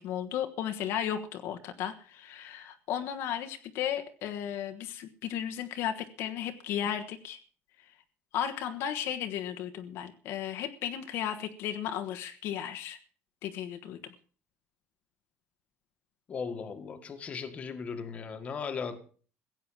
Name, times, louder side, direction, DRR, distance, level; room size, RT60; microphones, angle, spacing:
voice 1, 0.0-7.4 7.8-8.0 8.3-13.0 13.4-14.1, left 10 dB, 60° left, 1.3 m, -35 dB
voice 2, 16.3-19.0, left 5 dB, 30° left, 1.8 m, -37 dB
16.0 x 9.1 x 7.3 m
cardioid pair, 170°, 5 cm